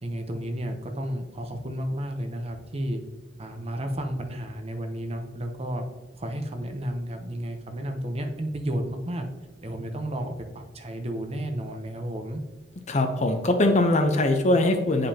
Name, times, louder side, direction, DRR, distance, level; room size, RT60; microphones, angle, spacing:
voice 1, 0.0-3.0 3.4-5.8 6.2-9.3 9.6-12.4, right 1 dB, 35° right, 5 dB, 0.7 m, -32 dB
voice 2, 12.9-15.1, left 2 dB, 40° left, 7 dB, 0.6 m, -22 dB
9.3 x 5.2 x 2.8 m, 1.1 s
head